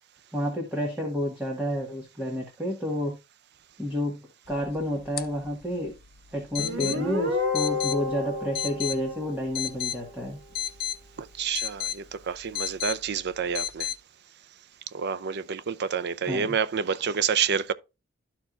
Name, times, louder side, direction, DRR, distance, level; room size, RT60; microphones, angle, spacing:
voice 1, 0.3-3.2 3.8-4.2 4.5-5.9 6.3-10.4 16.2-16.6, left 1 dB, 10° right, 1.6 m, -30 dB
sound 1, 4.5-14.0, left 10 dB, 45° left, 0.6 m, -36 dB
Guitar, 6.6-10.0, left 3 dB, 85° right, 2.6 m, -30 dB
voice 2, 11.4-13.9 14.9-17.7, right 6 dB, 55° right, 0.5 m, -28 dB
13.0 x 4.5 x 2.5 m
head